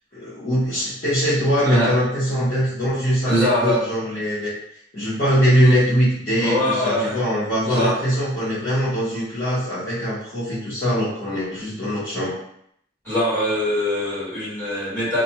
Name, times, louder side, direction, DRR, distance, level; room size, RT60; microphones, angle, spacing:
voice 1, 0.1-4.5 4.9-12.3, equal, 45° left, -14 dB, 0.9 m, -22 dB
voice 2, 1.6-1.9 3.3-3.8 6.4-7.1 7.6-7.9 13.0-15.2, left 1 dB, 10° left, -14 dB, 1.4 m, -22 dB
2.4 x 2.2 x 2.8 m, 0.72 s
head